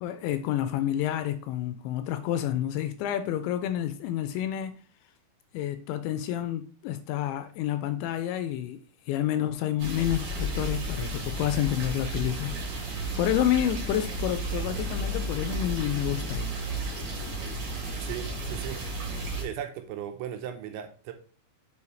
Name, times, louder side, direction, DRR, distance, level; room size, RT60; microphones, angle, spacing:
voice 1, 0.0-4.7 5.5-8.8 9.1-12.9 13.2-16.5 16.8-16.9 17.2-17.3, left 11 dB, 80° left, 2.7 m, -29 dB
sound 1, 9.8-19.4, right 1 dB, 50° right, 2.7 m, -33 dB
voice 2, 18.0-21.1, right 9 dB, 80° right, 2.9 m, -38 dB
7.0 x 5.5 x 3.2 m
omnidirectional pair, 5.5 m